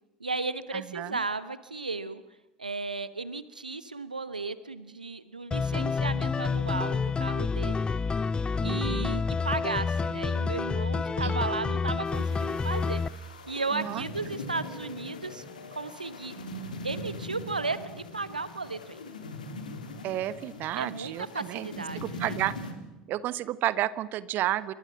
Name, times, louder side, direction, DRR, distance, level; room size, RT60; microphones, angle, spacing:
voice 1, 0.2-2.2 2.6-7.8 8.6-13.0 13.5-15.4 15.7-16.3 16.8-19.0 20.8-22.3, right 3 dB, 85° right, 15 dB, 1.1 m, -34 dB
voice 2, 0.7-1.2 8.6-9.1 11.2-11.4 13.7-14.0 20.0-21.7 21.9-22.5 23.1-24.7, right 14 dB, 45° right, 17 dB, 1.1 m, -31 dB
sound 1, 5.5-13.1, left 4 dB, 20° left, 0.8 m, -28 dB
sound 2, 12.0-22.7, left 1 dB, 75° left, 3.4 m, -41 dB
28.0 x 24.5 x 5.9 m, 1.0 s
figure-of-eight pair, 65°, 4 cm